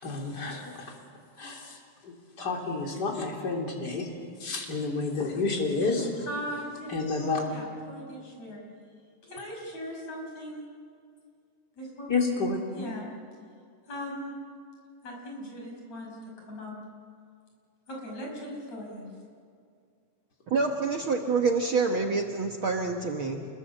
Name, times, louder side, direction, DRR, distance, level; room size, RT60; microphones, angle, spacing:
voice 1, 0.0-0.9 1.4-1.8 2.0-4.1 4.4-6.3 6.9-7.4 12.1-12.6, left 3 dB, 35° left, 0 dB, 3.8 m, -30 dB
voice 2, 6.3-8.9 9.3-10.6 11.8-12.1 12.7-13.0 13.9-14.3 15.0-16.1 16.4-16.7 17.9-19.1, equal, 60° left, 0 dB, 6.9 m, -39 dB
voice 3, 20.5-23.5, right 4 dB, 55° right, 3 dB, 1.7 m, -27 dB
28.0 x 22.0 x 7.7 m, 2.2 s
omnidirectional pair, 3.5 m